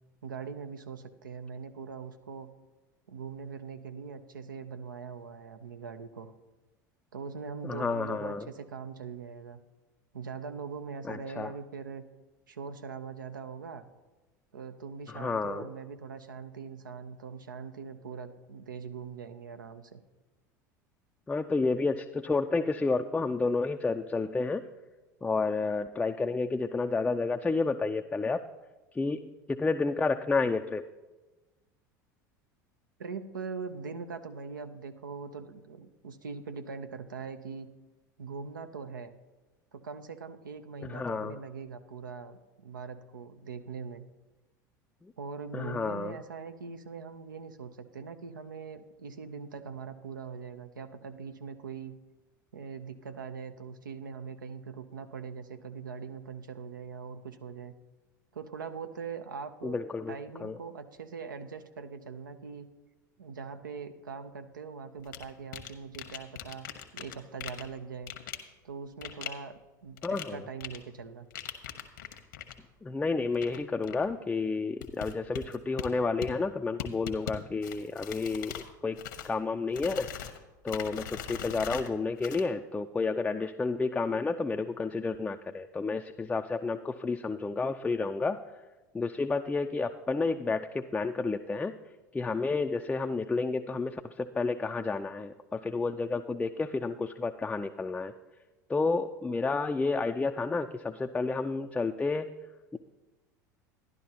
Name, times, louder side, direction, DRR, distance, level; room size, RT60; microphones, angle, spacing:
voice 1, 0.2-2.5 3.1-6.3 7.1-9.6 10.1-12.1 12.5-13.9 14.5-20.0 33.0-37.7 38.2-39.1 39.7-44.0 45.2-52.0 52.5-57.7 58.3-62.7 63.2-66.7 66.9-68.1 68.6-71.3, right 5 dB, 85° right, 9 dB, 0.6 m, -42 dB
voice 2, 7.6-8.5 11.1-11.5 15.1-15.7 21.3-24.7 25.2-28.4 28.9-30.8 40.8-41.4 45.0-45.1 45.5-46.2 59.6-60.6 70.0-70.4 72.8-79.0 79.2-80.1 80.6-88.4 88.9-91.7 92.1-98.1 98.7-102.3 102.7-102.8, left 3 dB, 10° left, 5 dB, 0.4 m, -30 dB
sound 1, 65.0-65.2 65.5-67.2 67.4-67.6 68.1-68.4 69.0-69.3 70.0-70.2 70.6-70.8 71.3-72.5 73.3-73.6 73.8-74.1 74.8-75.9 76.2-76.3 76.8-77.3 77.6-78.7 79.0-79.4 79.7-80.4 80.7-81.9 82.2-82.4, left 10 dB, 75° left, 1.0 m, -40 dB
12.0 x 11.0 x 2.9 m, 1.2 s
hypercardioid pair, 80°, 10 cm